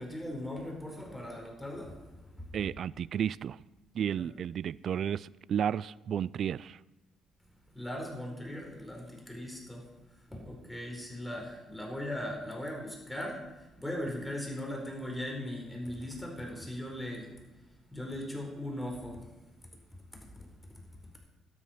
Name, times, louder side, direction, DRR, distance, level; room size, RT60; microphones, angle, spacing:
voice 1, 0.0-2.0 4.2-4.3 7.7-9.8 10.3-13.4 13.8-17.3 17.9-19.2, left 1 dB, 5° left, 4.6 m, -39 dB
voice 2, 2.5-3.6 3.9-6.8, right 9 dB, 60° right, 0.3 m, -33 dB
12.5 x 11.0 x 5.8 m
supercardioid pair, 65°, 0 cm